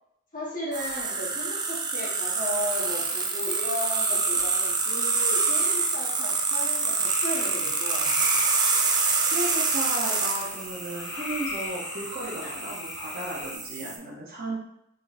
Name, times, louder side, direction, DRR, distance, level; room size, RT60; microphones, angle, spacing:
voice 1, 0.3-8.4, left 1 dB, 40° left, -6 dB, 1.0 m, -35 dB
sound 1, 0.7-14.0, right 4 dB, 20° right, 0.3 m, -27 dB
sound 2, 7.1-13.6, left 3 dB, 85° left, 0.9 m, -38 dB
voice 2, 9.3-14.6, right 1 dB, 40° right, -5 dB, 0.8 m, -34 dB
4.3 x 3.4 x 2.5 m, 0.78 s
head